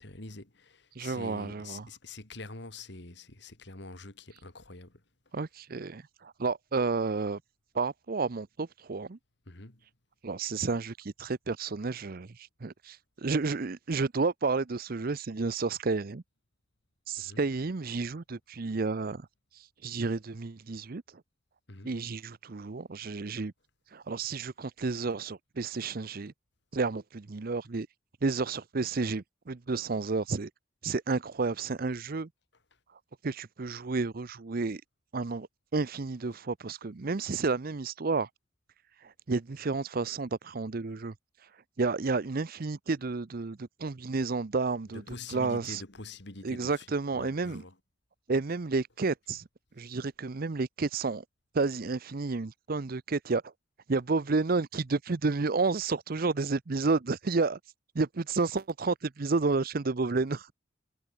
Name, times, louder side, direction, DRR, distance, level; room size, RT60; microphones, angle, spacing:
voice 1, 0.0-5.0 9.5-9.8 17.2-17.4 21.7-21.9 44.9-46.9 47.1-47.7, left 3 dB, 60° left, 2.8 m, -45 dB
voice 2, 1.0-1.9 5.3-7.4 7.7-9.2 10.2-12.4 12.6-16.2 17.1-19.3 19.8-21.0 21.8-23.5 23.9-26.3 26.7-27.9 28.2-30.5 30.8-32.3 33.2-34.8 35.1-35.5 35.7-38.3 39.0-41.1 41.8-45.8 46.4-47.6 48.3-49.5 49.8-51.2 51.5-53.4 53.9-57.6 57.9-60.5, right 3 dB, 50° right, 0.6 m, -31 dB
head